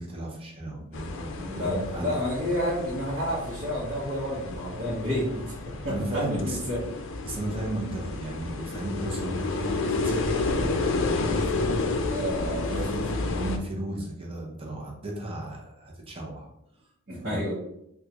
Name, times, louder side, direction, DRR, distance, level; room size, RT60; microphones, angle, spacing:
voice 1, 0.0-2.2 5.9-6.6 7.2-11.8 12.7-16.5 17.2-17.4, right 1 dB, 25° right, -1 dB, 0.7 m, -34 dB
sound 1, 0.9-13.6, left 3 dB, 60° left, 0.4 m, -31 dB
voice 2, 1.3-5.5 5.8-6.8 12.1-12.9 17.1-17.5, equal, 50° right, -10 dB, 1.1 m, -30 dB
3.6 x 2.4 x 2.9 m, 0.78 s
head